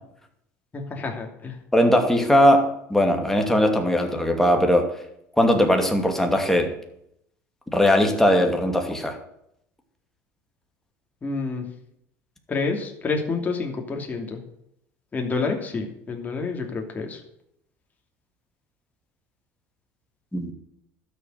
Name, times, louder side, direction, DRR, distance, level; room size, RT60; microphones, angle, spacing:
voice 1, 0.7-1.6 11.2-11.6 12.5-14.4 15.1-17.2, left 4 dB, 25° left, 1 dB, 2.8 m, -28 dB
voice 2, 1.7-4.9 5.4-6.7 7.7-9.2 20.3-20.5, equal, 5° left, 3 dB, 2.5 m, -19 dB
12.5 x 6.8 x 9.4 m, 0.75 s
supercardioid pair, 105°, 7 cm